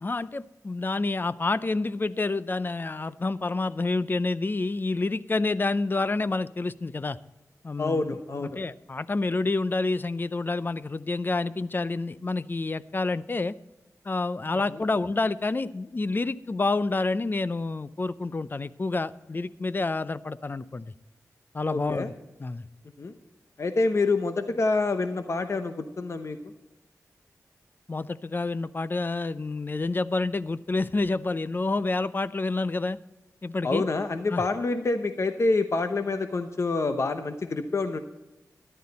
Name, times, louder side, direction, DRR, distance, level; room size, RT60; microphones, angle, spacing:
voice 1, 0.0-7.2 7.6-8.1 8.4-13.5 14.1-20.9 21.5-22.1 22.4-22.6 27.9-33.0 33.4-33.8 34.3-34.4, left 3 dB, 35° left, 16 dB, 0.5 m, -28 dB
voice 2, 7.8-8.6 14.7-14.8 21.6-22.1 23.0-23.1 23.6-26.4 33.6-38.0, left 3 dB, 50° left, 8 dB, 0.9 m, -27 dB
13.5 x 11.5 x 4.2 m, 1.0 s
wide cardioid pair, 75°, 6 cm